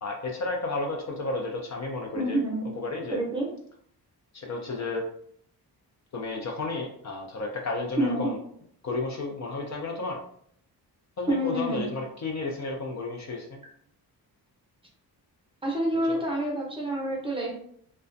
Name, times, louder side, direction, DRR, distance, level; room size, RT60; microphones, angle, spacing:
voice 1, 0.0-2.4 2.8-3.2 4.3-5.0 6.1-8.4 8.8-10.2 11.2-13.6 16.1-16.2, left 3 dB, 45° left, 0 dB, 0.5 m, -32 dB
voice 2, 2.1-2.6 3.1-3.5 8.0-8.3 11.3-11.9 15.6-17.5, right 1 dB, 15° right, -3 dB, 0.7 m, -27 dB
2.3 x 2.2 x 2.5 m, 0.64 s
cardioid pair, 105°, 40 cm